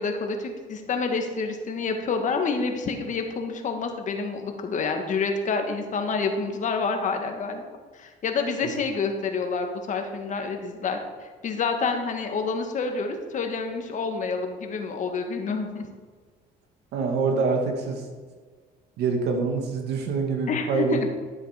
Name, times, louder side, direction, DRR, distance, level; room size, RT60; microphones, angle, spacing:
voice 1, 0.0-7.6 7.9-15.9 20.5-21.1, left 4 dB, 50° left, 4 dB, 1.8 m, -28 dB
voice 2, 16.9-18.1 19.0-21.2, right 4 dB, 80° right, 3 dB, 2.1 m, -25 dB
12.5 x 7.5 x 5.1 m, 1.5 s
cardioid pair, 110°, 17 cm